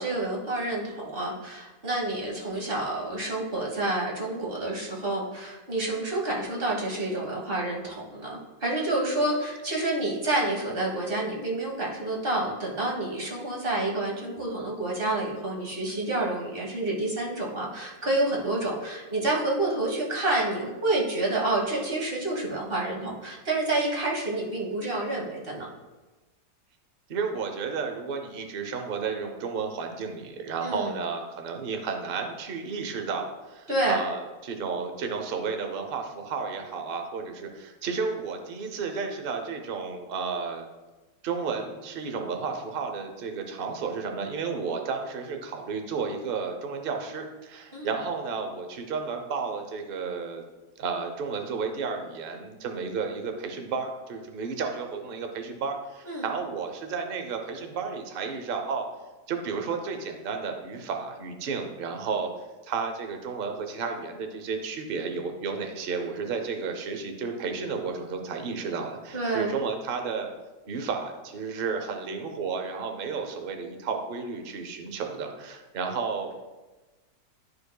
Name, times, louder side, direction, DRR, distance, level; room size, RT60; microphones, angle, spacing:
voice 1, 0.0-25.7 30.6-30.9 33.7-34.0 47.7-47.9 56.1-56.3 69.1-69.5, right 2 dB, 35° right, -2 dB, 1.3 m, -28 dB
voice 2, 27.1-40.7 41.2-50.4 50.8-58.9 59.3-62.3 62.6-70.3 70.7-76.3, right 5 dB, 65° right, 5 dB, 0.5 m, -32 dB
11.5 x 4.8 x 2.2 m, 1.2 s
omnidirectional pair, 2.0 m